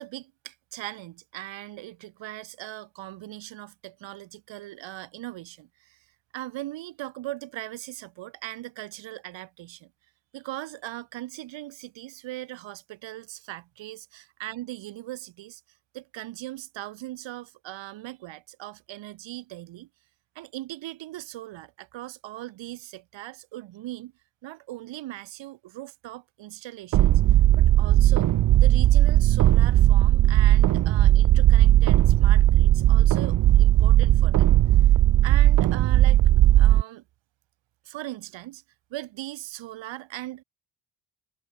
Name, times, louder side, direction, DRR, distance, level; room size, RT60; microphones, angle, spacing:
voice 1, 0.0-6.1 6.3-9.9 10.3-15.6 15.9-19.9 20.3-24.1 24.4-27.2 27.6-28.3 28.6-34.5 34.8-34.9 35.2-36.3 36.6-37.0 37.8-38.6 38.9-40.4, right 15 dB, 80° right, 4.2 m, -39 dB
sound 1, 26.9-36.8, right 14 dB, 45° right, 0.5 m, -17 dB
supercardioid pair, 65°, 44 cm